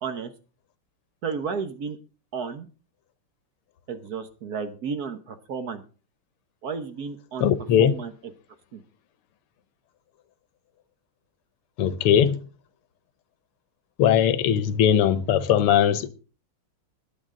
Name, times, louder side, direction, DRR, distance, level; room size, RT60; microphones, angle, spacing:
voice 1, 0.0-0.3 1.2-2.0 2.3-2.7 3.9-5.8 6.6-7.5 7.8-8.1 8.7-8.8, right 6 dB, 55° right, 1.2 m, -32 dB
voice 2, 7.4-7.9 11.8-12.4 14.0-16.1, left 9 dB, 85° left, 1.8 m, -20 dB
19.5 x 7.9 x 3.7 m
omnidirectional pair, 2.4 m